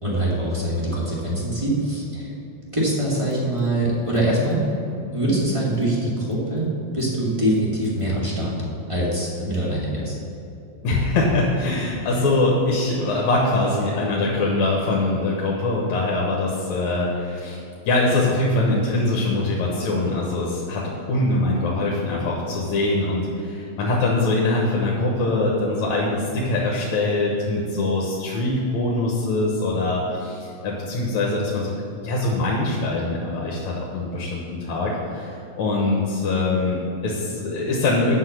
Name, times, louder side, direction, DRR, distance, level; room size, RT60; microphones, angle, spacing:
voice 1, 0.0-2.3 2.7-4.6 5.1-8.6 8.9-10.1, right 1 dB, 10° right, -6 dB, 1.8 m, -23 dB
voice 2, 10.8-31.7 32.0-38.2, left 2 dB, 75° left, -3 dB, 2.4 m, -23 dB
8.2 x 5.8 x 7.9 m, 2.8 s
omnidirectional pair, 3.3 m